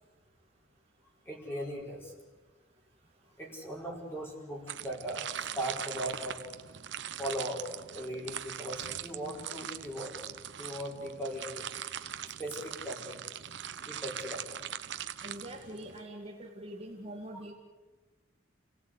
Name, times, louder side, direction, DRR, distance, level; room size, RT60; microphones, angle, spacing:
voice 1, 1.2-2.1 3.4-6.4 7.2-7.6 7.9-10.1 10.6-11.9 12.4-13.2 13.9-14.6, right 1 dB, 10° left, -1 dB, 5.1 m, -39 dB
sound 1, 4.7-16.0, right 9 dB, 60° right, 0.9 m, -41 dB
voice 2, 15.2-17.5, right 1 dB, 30° right, 0 dB, 2.0 m, -44 dB
29.5 x 17.5 x 8.2 m, 1.2 s
head